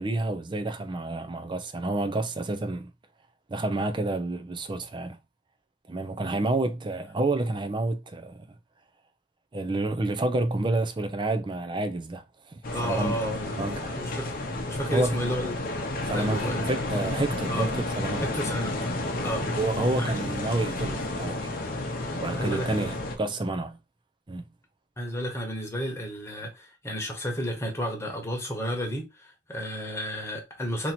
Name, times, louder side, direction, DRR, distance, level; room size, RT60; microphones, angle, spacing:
voice 1, 0.0-2.9 3.5-5.2 5.9-8.4 9.5-13.1 13.6-13.9 14.9-15.2 16.1-18.2 19.5-21.5 22.1-23.8 24.3-24.4, right 2 dB, 25° right, 0.5 m, -29 dB
sound 1, 12.6-23.2, left 2 dB, 50° left, 0.8 m, -31 dB
voice 2, 12.7-13.7 14.0-14.3 14.7-15.7 16.1-16.7 17.5-17.7 18.2-18.8 19.2-19.5 20.0-20.2 22.3-22.9 25.0-30.9, equal, 15° left, 1.1 m, -32 dB
2.9 x 2.8 x 4.2 m
head